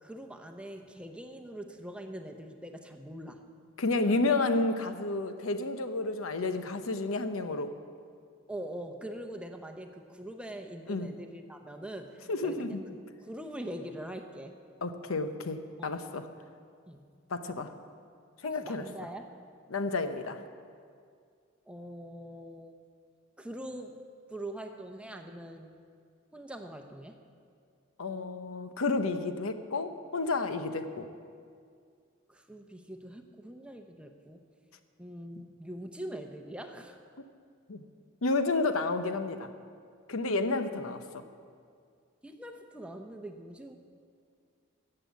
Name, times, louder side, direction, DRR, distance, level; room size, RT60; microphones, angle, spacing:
voice 1, 0.0-3.4 8.5-14.6 15.8-16.0 16.9-17.0 18.4-19.3 21.7-22.8 23.4-24.0 24.3-25.8 26.3-27.2 32.3-34.4 35.0-37.0 42.2-43.8, right 1 dB, 5° right, 5 dB, 0.7 m, -43 dB
voice 2, 3.8-7.7 10.9-11.1 12.3-12.8 14.8-16.2 17.3-17.7 18.4-18.8 19.7-20.4 28.0-31.1 37.7-37.8 38.2-39.5 40.1-41.0, left 3 dB, 90° left, 9 dB, 0.8 m, -31 dB
13.5 x 7.8 x 8.1 m, 2.2 s
head